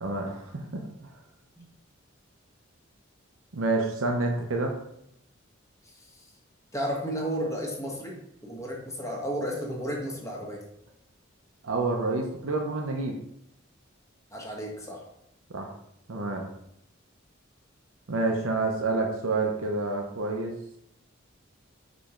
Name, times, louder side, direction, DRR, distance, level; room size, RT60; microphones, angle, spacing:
voice 1, 0.0-0.8 3.5-4.8 11.6-13.1 15.5-15.7 16.1-16.4 18.1-20.5, right 3 dB, 80° right, 1 dB, 0.8 m, -28 dB
voice 2, 6.7-8.2 8.4-10.6 14.3-15.0, equal, 15° left, -2 dB, 1.4 m, -33 dB
5.1 x 4.3 x 5.0 m, 0.77 s
head